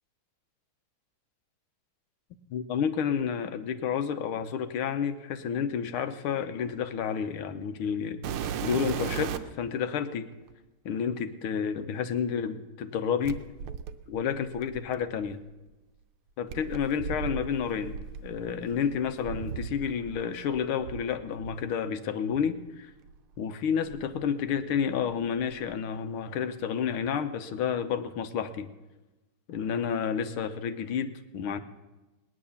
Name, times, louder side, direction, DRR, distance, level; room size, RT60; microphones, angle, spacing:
voice 1, 2.5-8.2 8.6-10.3 10.9-13.4 14.1-15.4 16.4-18.0 18.2-22.9 23.4-28.7 29.5-31.6, left 7 dB, 90° left, 10 dB, 1.8 m, -30 dB
sound 1, 8.2-9.6 10.5-10.6 13.2-15.3 16.5-20.2 20.5-21.6 22.3-22.5 23.1-23.2 23.9-25.0 25.2-25.7 27.0-27.1, right 8 dB, 85° right, 1.6 m, -37 dB
18.5 x 9.9 x 7.0 m, 1.1 s
omnidirectional pair, 2.3 m